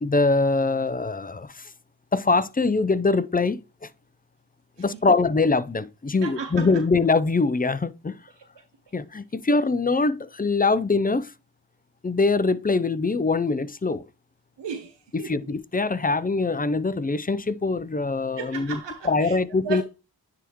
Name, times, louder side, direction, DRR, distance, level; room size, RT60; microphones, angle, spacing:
voice 1, 0.0-1.7 2.1-3.6 4.8-8.1 8.9-11.3 12.0-14.0 15.1-18.8 19.0-19.8, left 3 dB, 20° left, 0.5 m, -23 dB
voice 2, 6.2-6.8 14.6-15.5 18.4-19.4 19.6-19.8, right 7 dB, 75° right, 0.9 m, -35 dB
9.8 x 3.6 x 3.0 m
cardioid pair, 50°, 43 cm